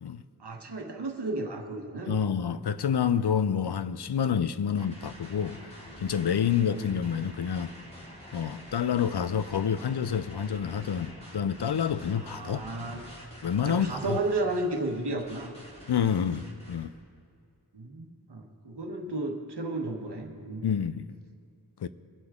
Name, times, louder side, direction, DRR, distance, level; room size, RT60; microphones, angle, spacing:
voice 1, 0.4-2.2 6.7-6.9 12.2-13.0 13.6-15.5 17.7-20.7, right 2 dB, 90° right, 1.2 m, -33 dB
voice 2, 2.1-5.7 6.0-7.7 8.3-12.6 13.4-14.2 15.9-16.9 20.6-21.1 21.8-21.9, left 8 dB, 80° left, 0.5 m, -28 dB
sound 1, 4.8-16.9, equal, 15° left, 2.4 m, -47 dB
23.0 x 7.9 x 3.6 m
wide cardioid pair, 50°, 39 cm